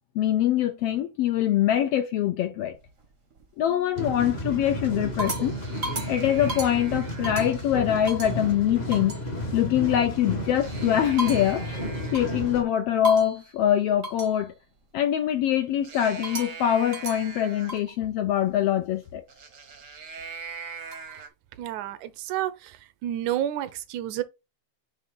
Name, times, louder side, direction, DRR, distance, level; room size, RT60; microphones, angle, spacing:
voice 1, 0.1-2.7 3.6-5.5 6.1-9.1 9.5-11.7 12.1-14.5 14.9-19.2, left 11 dB, 80° left, 1.4 m, -24 dB
sound 1, 2.7-3.4 4.0-4.4 4.8-7.7 8.1-8.4 8.9-9.2 10.4-12.5 13.0-13.5 14.0-14.4 15.8-17.9 19.3-21.3, right 2 dB, 55° right, 0.8 m, -37 dB
sound 2, 4.0-12.6, equal, 50° left, 0.4 m, -32 dB
voice 2, 21.6-22.8 23.0-24.2, right 12 dB, 80° right, 2.1 m, -30 dB
7.9 x 3.3 x 3.8 m
omnidirectional pair, 3.4 m